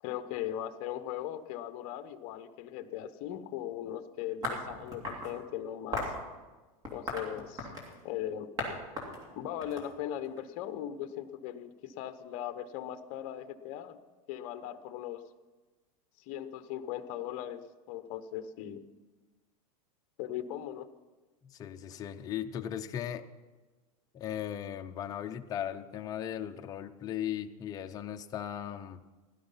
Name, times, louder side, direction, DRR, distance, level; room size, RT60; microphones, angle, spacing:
voice 1, 0.0-6.1 6.9-7.7 8.0-8.5 9.3-14.0 14.3-15.2 16.2-18.8 20.2-20.9, left 11 dB, 40° left, 11 dB, 0.9 m, -39 dB
sound 1, 4.4-5.3 5.9-6.2 6.8-8.0 8.6-8.7 9.0-10.4, left 1 dB, 20° right, 2.5 m, -36 dB
voice 2, 21.4-23.2 24.1-29.0, left 10 dB, 20° left, 6 dB, 0.6 m, -37 dB
16.5 x 11.5 x 5.6 m, 1.2 s
supercardioid pair, 160°, 18 cm